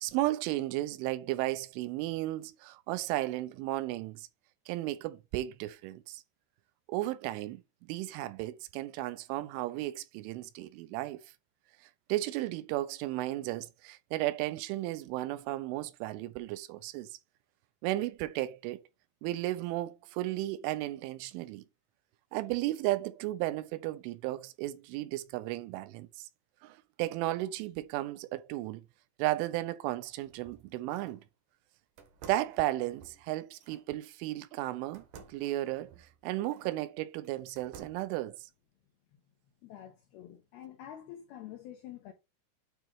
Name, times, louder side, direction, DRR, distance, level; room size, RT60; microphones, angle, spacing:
voice 1, 0.0-4.3 4.7-6.2 6.9-7.6 7.9-11.2 12.1-17.1 17.8-18.8 19.2-21.6 22.3-26.3 26.6-28.8 29.2-31.2 32.2-38.4, right 16 dB, 85° right, 3.1 m, -34 dB
sound 1, 30.1-31.3 32.0-33.9 34.9-36.8 37.2-38.2, right 6 dB, 70° right, 2.1 m, -54 dB
voice 2, 39.6-42.1, left 11 dB, 80° left, 2.3 m, -47 dB
8.9 x 3.0 x 4.7 m
omnidirectional pair, 5.6 m